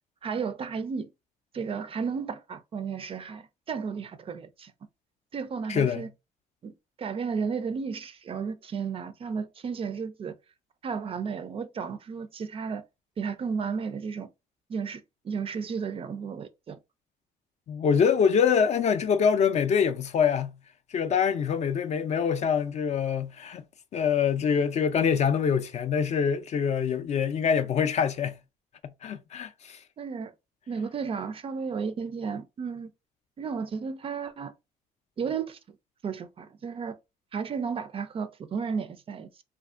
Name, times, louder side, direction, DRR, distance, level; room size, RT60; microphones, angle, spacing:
voice 1, 0.2-1.1 1.5-4.7 5.3-6.1 6.6-6.7 7.0-10.3 10.8-12.8 13.2-14.3 14.7-16.8 30.0-30.3 30.7-32.9 33.4-34.5 35.2-35.6 36.0-37.0 37.3-39.3, right 6 dB, 35° right, 0.4 m, -33 dB
voice 2, 5.7-6.0 17.7-20.5 20.9-23.6 23.9-28.3 29.0-29.8, left 7 dB, 40° left, 0.4 m, -25 dB
2.5 x 2.4 x 2.3 m
cardioid pair, 110°, 17 cm